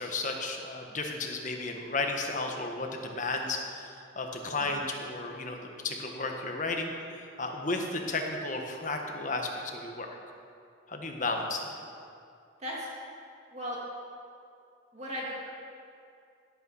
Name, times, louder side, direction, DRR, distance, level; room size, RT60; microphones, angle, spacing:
voice 1, 0.0-6.9 7.4-10.1 10.9-11.7, left 3 dB, 40° left, 2 dB, 1.4 m, -33 dB
voice 2, 14.9-15.3, equal, 35° right, -4 dB, 2.2 m, -36 dB
17.0 x 8.6 x 5.6 m, 2.4 s
head